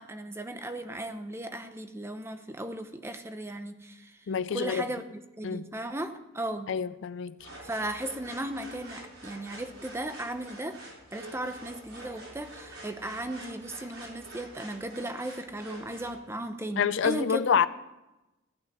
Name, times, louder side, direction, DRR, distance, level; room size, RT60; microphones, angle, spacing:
voice 1, 0.0-4.3 4.5-5.0 5.4-6.7 7.6-10.8 11.1-17.6, right 1 dB, 10° right, 0.7 m, -36 dB
voice 2, 4.3-4.8 5.4-5.7 6.7-7.5 16.8-17.7, left 7 dB, 60° left, 0.4 m, -27 dB
sound 1, 7.4-16.2, right 1 dB, 75° right, 4.6 m, -47 dB
15.0 x 5.8 x 8.6 m
head